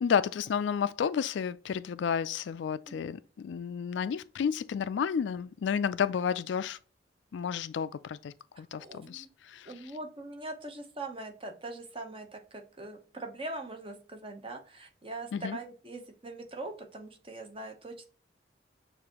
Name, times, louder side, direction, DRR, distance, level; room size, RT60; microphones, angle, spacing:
voice 1, 0.0-6.8 7.3-9.9 15.3-15.6, left 7 dB, 70° left, 0.3 m, -31 dB
voice 2, 8.8-9.3 9.7-18.1, right 2 dB, 30° right, 0.8 m, -42 dB
6.7 x 2.6 x 2.9 m
head